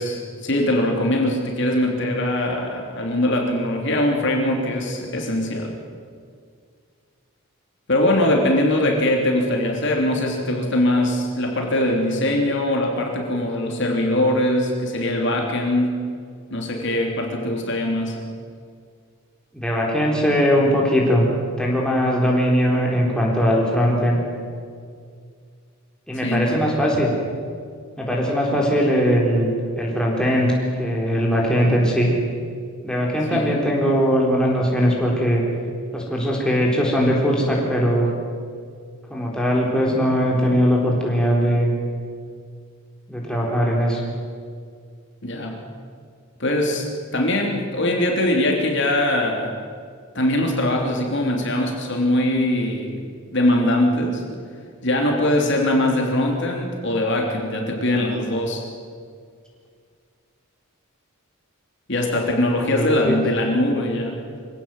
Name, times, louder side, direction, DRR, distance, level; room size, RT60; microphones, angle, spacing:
voice 1, 0.0-5.7 7.9-16.0 16.5-18.2 26.1-26.6 33.3-33.6 45.2-45.6 46.4-49.6 50.1-53.0 53.3-54.2 54.8-58.6 61.9-64.3, left 1 dB, 55° left, 1 dB, 3.2 m, -22 dB
voice 2, 19.5-21.3 21.6-24.2 26.1-27.1 28.0-29.5 29.8-30.5 30.8-32.1 32.8-35.4 35.9-38.1 39.1-41.7 43.1-44.0 62.6-63.2, equal, 5° left, -3 dB, 4.1 m, -20 dB
24.5 x 17.0 x 7.8 m, 2.1 s
head